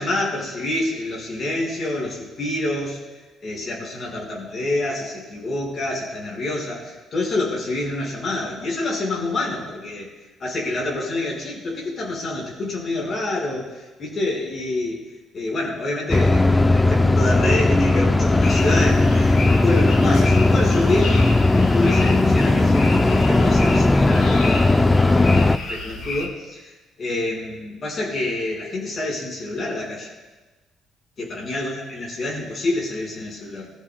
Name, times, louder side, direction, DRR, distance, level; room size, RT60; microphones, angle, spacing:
voice 1, 0.0-3.0 3.4-10.1 10.4-15.0 15.3-30.1 31.2-33.7, left 2 dB, 35° left, -2 dB, 4.6 m, -27 dB
sound 1, 16.1-25.6, left 2 dB, 10° left, 0.4 m, -17 dB
sound 2, 18.4-26.3, left 3 dB, 55° left, 3.3 m, -32 dB
24.0 x 13.5 x 2.2 m, 1.2 s
cardioid pair, 140°, 0 cm